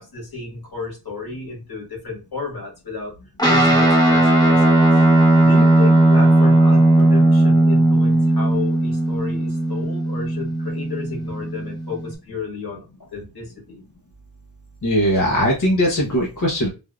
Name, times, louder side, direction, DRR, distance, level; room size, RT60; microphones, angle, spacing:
voice 1, 0.0-3.1 3.4-4.8 5.4-12.8 13.1-13.8, left 4 dB, 75° left, -2 dB, 1.9 m, -32 dB
Guitar, 3.4-12.1, right 1 dB, 10° left, 0.9 m, -16 dB
voice 2, 14.8-16.7, equal, 50° left, -3 dB, 1.0 m, -19 dB
3.5 x 2.6 x 2.4 m, 0.29 s
wide cardioid pair, 75°, 38 cm